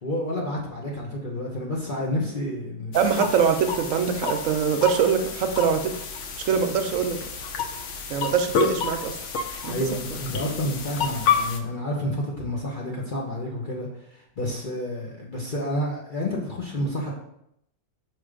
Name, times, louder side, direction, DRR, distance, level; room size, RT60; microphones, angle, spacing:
voice 1, 0.0-2.9 9.7-17.1, left 1 dB, 35° left, -3 dB, 0.9 m, -29 dB
sound 1, 2.9-11.6, left 5 dB, 60° left, 0.8 m, -29 dB
voice 2, 2.9-5.9 6.5-7.2 8.1-9.2 9.6-9.8, right 7 dB, 65° right, 7 dB, 0.9 m, -23 dB
6.1 x 3.2 x 4.9 m, 0.75 s
omnidirectional pair, 1.7 m